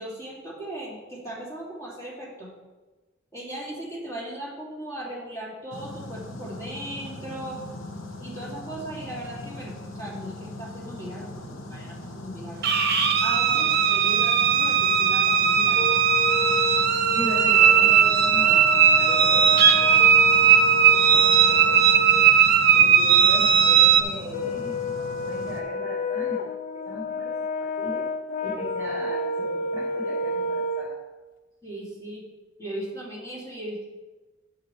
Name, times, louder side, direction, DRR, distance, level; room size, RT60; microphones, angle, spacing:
voice 1, 0.0-2.5 3.3-7.6 8.2-12.8 13.2-16.0 31.6-32.2 32.6-33.9, right 1 dB, 15° left, -6 dB, 2.4 m, -37 dB
sound 1, 5.7-25.6, left 2 dB, 80° left, 1.0 m, -40 dB
sound 2, 12.6-24.0, right 8 dB, 55° right, 0.8 m, -18 dB
Brass instrument, 15.8-22.2 24.3-30.9, left 3 dB, 40° left, 0.4 m, -31 dB
voice 2, 17.1-22.3 22.7-26.4 26.7-27.3 27.6-28.1 28.4-30.9, equal, 15° right, -4 dB, 1.5 m, -38 dB
11.5 x 6.2 x 3.1 m, 1.2 s
head